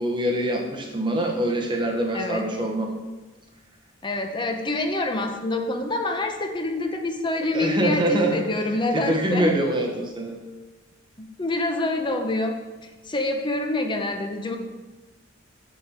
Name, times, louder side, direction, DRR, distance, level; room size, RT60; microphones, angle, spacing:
voice 1, 0.0-2.9 7.5-8.4 8.9-10.4, right 1 dB, 25° right, 0 dB, 0.9 m, -24 dB
voice 2, 2.1-2.4 4.0-9.6 11.2-12.6 12.8-14.6, left 2 dB, 25° left, 4 dB, 0.8 m, -26 dB
6.9 x 5.2 x 7.1 m, 1.2 s
head